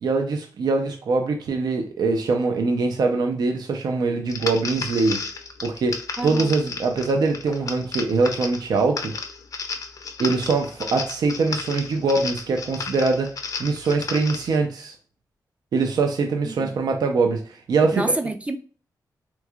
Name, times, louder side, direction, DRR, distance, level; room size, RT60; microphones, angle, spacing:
voice 1, 0.0-5.2 5.6-9.1 10.2-13.3 13.6-14.9 15.7-17.4 17.7-18.1, right 3 dB, 75° right, 4 dB, 0.5 m, -23 dB
sound 1, 4.3-14.6, left 4 dB, 55° left, 0.5 m, -33 dB
voice 2, 6.2-6.5 16.4-16.7 17.9-18.6, right 2 dB, 20° right, 8 dB, 0.3 m, -27 dB
3.5 x 3.1 x 2.3 m, 0.39 s
wide cardioid pair, 100°, 7 cm